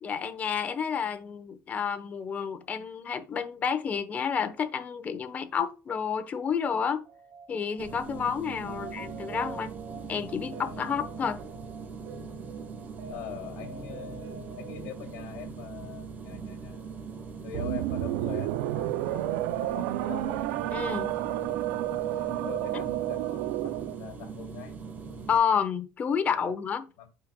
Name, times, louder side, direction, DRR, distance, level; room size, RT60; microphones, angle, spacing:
voice 1, 0.0-7.0 7.5-9.7 10.1-11.4 20.7-21.2 25.3-26.9, left 7 dB, 30° left, 1.0 m, -30 dB
sound 1, 7.1-15.2, right 4 dB, 55° right, 1.6 m, -46 dB
sound 2, 7.8-25.4, right 5 dB, 35° right, 1.8 m, -41 dB
voice 2, 8.6-9.2 13.1-14.3 14.6-17.0 17.4-20.4 22.1-24.8 26.3-26.5 27.0-27.1, left 10 dB, 70° left, 2.4 m, -43 dB
sound 3, 17.5-24.0, right 15 dB, 90° right, 0.4 m, -30 dB
8.8 x 5.2 x 2.2 m
cardioid pair, 140°, 5 cm